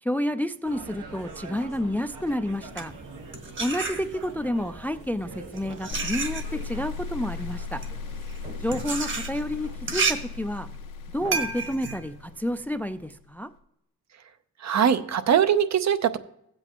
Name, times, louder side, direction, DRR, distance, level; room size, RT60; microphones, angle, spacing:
voice 1, 0.0-2.9 3.6-7.8 8.6-10.7 11.1-13.5, left 1 dB, 5° left, 11 dB, 0.3 m, -30 dB
sound 1, 0.6-10.2, right 3 dB, 85° right, 1.5 m, -44 dB
sound 2, 2.5-4.5 5.2-13.1, right 4 dB, 40° right, 1.2 m, -32 dB
sound 3, 5.9-13.0, left 5 dB, 85° left, 0.9 m, -37 dB
voice 2, 14.6-16.2, right 8 dB, 60° right, 11 dB, 0.7 m, -21 dB
15.0 x 7.9 x 3.0 m, 0.78 s
cardioid pair, 90°, 31 cm